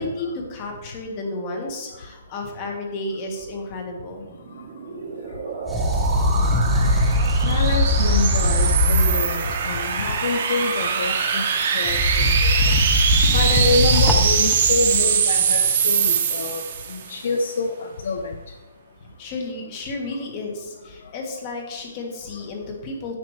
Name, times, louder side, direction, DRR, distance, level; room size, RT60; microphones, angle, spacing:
voice 1, 0.0-4.2 19.0-23.1, left 2 dB, 25° left, 2 dB, 1.7 m, -32 dB
sound 1, 4.5-17.1, right 7 dB, 40° right, 1.3 m, -23 dB
sound 2, 5.7-9.8 11.9-14.9, left 1 dB, 5° left, 0.7 m, -20 dB
voice 2, 7.4-11.4 11.7-12.7 13.3-16.6 16.9-18.3, left 3 dB, 60° left, 5 dB, 0.8 m, -26 dB
10.5 x 8.0 x 3.3 m, 1.2 s
hypercardioid pair, 170°, 0 cm